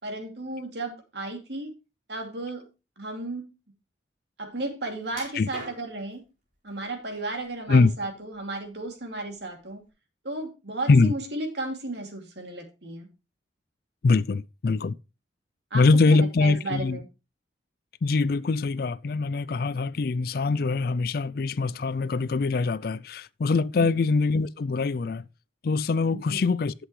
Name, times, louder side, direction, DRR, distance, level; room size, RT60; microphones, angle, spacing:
voice 1, 0.0-1.7 2.1-2.6 3.0-3.4 4.4-6.2 6.6-9.8 10.2-13.1 15.7-17.1 23.8-23.9 26.1-26.4, right 2 dB, 65° right, 2.6 m, -34 dB
sound 1, 5.1-6.1 6.8-7.5 7.9-8.8 9.2-9.3 9.9-10.0, right 2 dB, 45° right, 4.2 m, -43 dB
voice 2, 14.0-15.0 15.7-17.0 18.0-25.2 25.6-26.7, left 3 dB, 50° left, 0.4 m, -23 dB
11.5 x 7.9 x 3.1 m
head